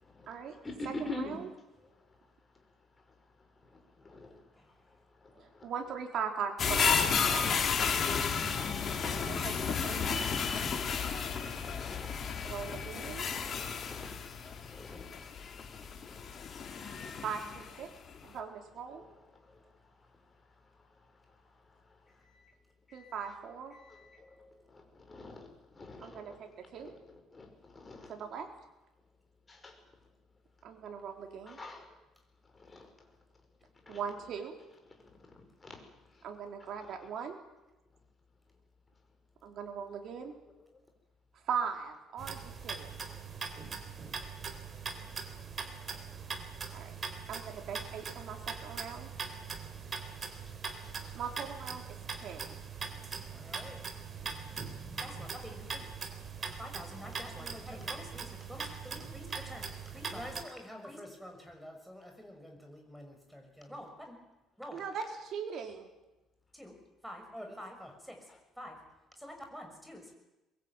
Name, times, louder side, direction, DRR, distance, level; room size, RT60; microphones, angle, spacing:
voice 1, 0.0-0.4 0.6-1.4 3.7-4.4 5.2-5.7 11.6-12.1 12.6-14.2 14.5-15.1 15.4-16.5 18.2-18.5 18.9-19.2 19.5-19.6 22.3-22.4 22.9-23.4 23.7-26.4 26.7-28.1 29.5-29.8 31.3-31.9 32.6-32.9 33.9-34.0 35.6-35.8 36.8-37.0 40.1-40.2 43.1-43.2 68.3-68.4, left 2 dB, 20° left, 4 dB, 5.8 m, -47 dB
voice 2, 5.3-6.9 9.0-10.3 12.4-13.3 17.2-17.9 18.2-19.0 22.9-23.7 26.0-26.9 28.1-28.5 30.6-31.6 33.9-34.5 36.2-37.4 39.4-40.3 41.5-43.0 46.7-46.9 47.3-49.1 51.1-51.8 52.2-52.4 64.7-65.9, right 7 dB, 55° right, 4 dB, 4.4 m, -39 dB
sound 1, 6.6-17.8 18.2-18.3, left 6 dB, 40° left, 3.4 m, -32 dB
sound 2, 42.2-60.4, right 5 dB, 30° right, 3.6 m, -41 dB
voice 3, 53.3-53.8 54.4-55.8 56.6-64.2 64.6-64.8 66.5-66.7 67.0-68.3 68.6-68.8 69.2-70.2, equal, ahead, 3 dB, 6.1 m, -47 dB
22.5 x 22.5 x 9.2 m, 0.99 s
cardioid pair, 130°, 0 cm